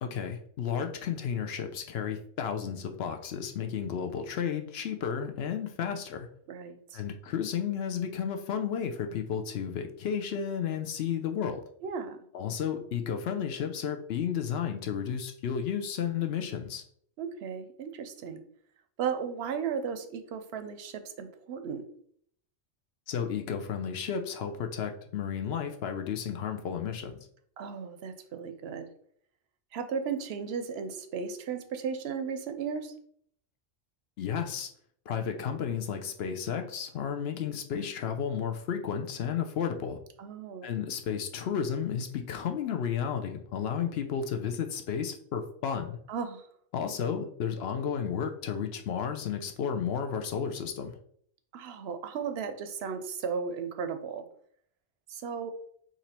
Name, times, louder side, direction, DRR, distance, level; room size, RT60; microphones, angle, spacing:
voice 1, 0.0-6.3 6.9-11.6 12.3-16.8 23.1-27.3 34.2-34.7 35.1-40.0 40.6-46.0 46.7-50.9, left 7 dB, 70° left, 5 dB, 0.8 m, -32 dB
voice 2, 6.5-7.0 11.8-12.2 17.2-18.4 19.0-21.9 27.6-28.8 29.7-32.9 40.2-40.7 46.1-46.5 51.5-54.2 55.1-55.5, right 6 dB, 70° right, 8 dB, 0.8 m, -35 dB
3.9 x 3.0 x 4.2 m, 0.63 s
omnidirectional pair, 1.2 m